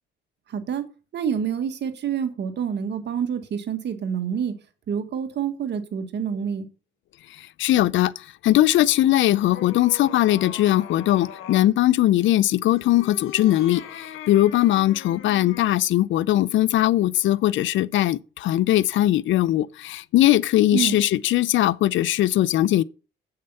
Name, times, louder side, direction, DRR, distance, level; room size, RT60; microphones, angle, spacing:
voice 1, 0.5-0.9 1.1-4.6 4.9-6.6 20.7-21.0, right 7 dB, 60° right, 1.6 m, -27 dB
voice 2, 7.4-22.8, left 14 dB, 70° left, 0.5 m, -20 dB
sound 1, 8.8-11.7 12.7-15.8, left 9 dB, 90° left, 1.4 m, -41 dB
8.0 x 6.6 x 5.5 m
cardioid pair, 90°, 20 cm